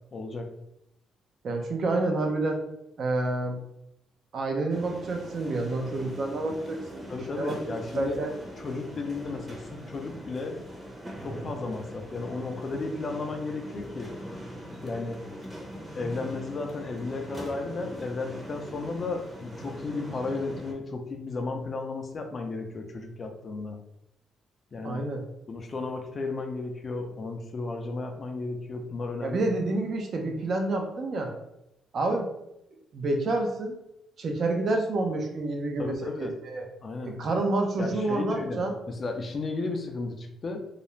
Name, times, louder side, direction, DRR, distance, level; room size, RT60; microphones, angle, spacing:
voice 1, 0.1-0.5 7.1-8.2 8.6-10.6 11.2-14.2 14.8-15.2 16.0-23.8 24.7-25.0 25.5-29.4 35.8-36.3 36.8-37.2 37.8-40.7, left 3 dB, 40° left, 4 dB, 0.4 m, -34 dB
voice 2, 1.4-2.6 3.0-3.6 4.3-7.0 7.4-7.6 7.9-8.3 24.8-25.2 29.2-31.3 31.9-32.3 32.9-33.7 34.2-36.7 37.1-38.7, right 2 dB, 55° right, 2 dB, 0.5 m, -28 dB
sound 1, 4.7-20.7, equal, 15° right, 0.7 m, -42 dB
2.4 x 2.0 x 3.0 m, 0.84 s
cardioid pair, 90°, 0 cm